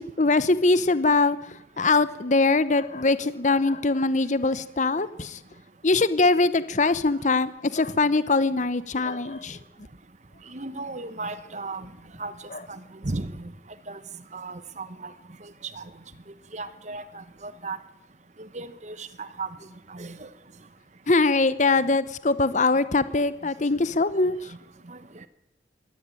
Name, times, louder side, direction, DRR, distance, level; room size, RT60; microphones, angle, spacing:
voice 1, 0.2-5.4 5.8-9.6 12.5-12.6 21.1-24.5, left 3 dB, 45° left, 15 dB, 0.9 m, -22 dB
voice 2, 10.5-11.9 12.2-12.3 12.7-13.5 13.9-14.0 14.3-15.1 15.8-15.9 16.5-17.8 18.4-19.5 19.9-20.3 24.9-25.0, right 3 dB, 40° right, 13 dB, 1.0 m, -35 dB
22.0 x 17.5 x 9.1 m, 0.86 s
head